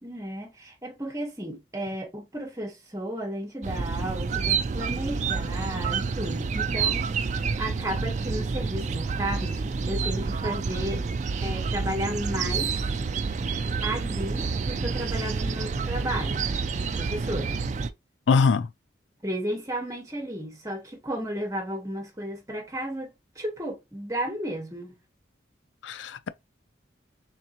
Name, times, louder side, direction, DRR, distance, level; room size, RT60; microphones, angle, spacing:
voice 1, 0.0-11.0 11.4-12.9 13.8-16.5 16.8-17.6 19.2-25.0, right 1 dB, 15° right, 1.1 m, -33 dB
sound 1, 3.6-17.9, right 5 dB, 40° right, 0.3 m, -28 dB
voice 2, 18.3-18.7 25.8-26.3, left 5 dB, 75° left, 0.4 m, -22 dB
3.8 x 3.4 x 2.9 m
head